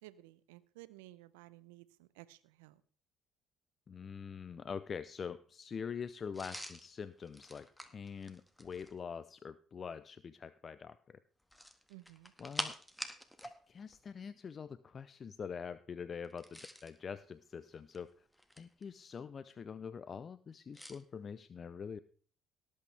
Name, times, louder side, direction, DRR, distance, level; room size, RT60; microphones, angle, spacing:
voice 1, 0.0-2.8 11.9-12.3, right 17 dB, 85° right, 16 dB, 0.7 m, -55 dB
voice 2, 3.9-11.2 12.4-12.8 13.4-18.3 18.6-22.0, left 6 dB, 45° left, 15 dB, 0.5 m, -45 dB
sound 1, 6.3-9.0 11.4-13.6 13.8-14.0 16.2-17.0 17.7-18.8 20.7-21.0, equal, 5° left, 1.8 m, -46 dB
18.0 x 8.6 x 3.4 m, 0.43 s
hypercardioid pair, 60°, 0 cm